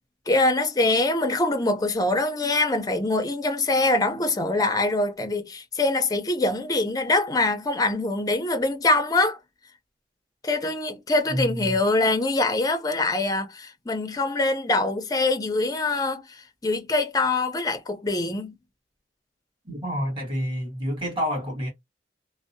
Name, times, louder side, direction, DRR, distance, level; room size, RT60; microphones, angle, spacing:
voice 1, 0.3-9.4 10.4-18.6, left 2 dB, 20° left, 0.5 m, -24 dB
voice 2, 11.3-11.8 19.6-21.7, equal, 30° right, 1.3 m, -28 dB
2.6 x 2.0 x 2.5 m
head